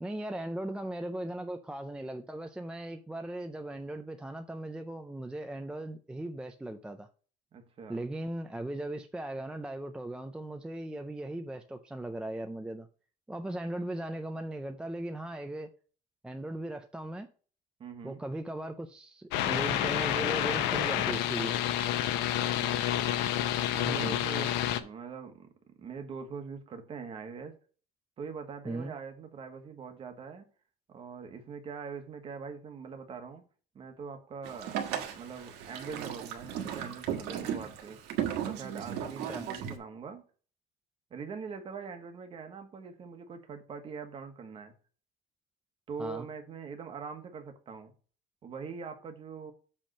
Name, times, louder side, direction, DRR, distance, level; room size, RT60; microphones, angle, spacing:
voice 1, 0.0-7.1 7.9-12.9 13.3-15.7 16.2-17.3 18.0-21.5 23.8-24.2 28.7-28.9 39.2-39.5 46.0-46.3, right 1 dB, 5° right, 0.4 m, -38 dB
voice 2, 7.5-8.0 17.8-18.2 22.3-22.9 23.7-24.5 24.8-25.5 25.8-27.5 28.2-30.5 30.9-33.4 33.7-34.8 35.1-38.0 38.4-40.2 41.1-44.7 45.9-47.9 48.4-49.5, right 5 dB, 30° right, 1.3 m, -42 dB
sound 1, 19.3-24.8, left 11 dB, 75° left, 0.8 m, -29 dB
Boat Water vehicle, 34.4-39.8, right 9 dB, 70° right, 1.5 m, -36 dB
7.7 x 3.5 x 6.5 m
cardioid pair, 150°, 18 cm